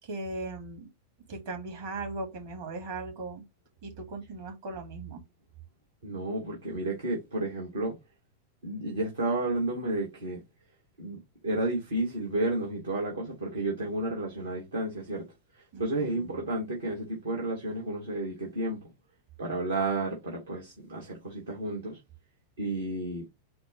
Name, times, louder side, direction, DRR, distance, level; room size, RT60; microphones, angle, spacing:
voice 1, 0.0-0.9 1.3-3.4 3.8-5.2 15.7-16.5, right 3 dB, 50° right, 1.5 m, -38 dB
voice 2, 6.0-8.0 8.6-10.4 11.0-15.2 15.8-18.8 19.4-22.0 22.6-23.3, right 2 dB, 70° right, 1.2 m, -31 dB
4.3 x 2.0 x 3.9 m
figure-of-eight pair, 90°, 0 cm